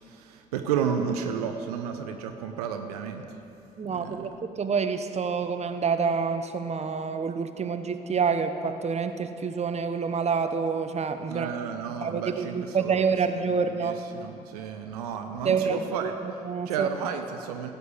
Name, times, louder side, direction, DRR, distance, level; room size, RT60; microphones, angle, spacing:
voice 1, 0.0-3.2 3.8-4.3 11.3-13.0 13.5-16.1 16.7-17.7, right 7 dB, 80° right, 6 dB, 0.7 m, -32 dB
voice 2, 3.8-4.3 4.6-11.5 12.0-14.0 15.4-16.9, right 5 dB, 35° right, 9 dB, 1.0 m, -27 dB
15.5 x 6.8 x 8.3 m, 2.7 s
figure-of-eight pair, 45°, 19 cm